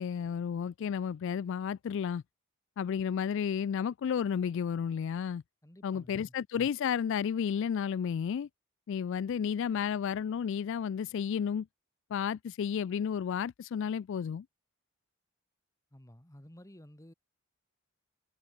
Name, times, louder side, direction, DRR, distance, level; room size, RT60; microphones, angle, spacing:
voice 1, 0.0-2.2 2.8-5.4 5.8-8.5 8.9-11.7 12.1-14.5, left 7 dB, 60° left, 0.3 m, -32 dB
voice 2, 5.6-6.3 15.9-17.1, equal, 15° left, 1.6 m, -53 dB
head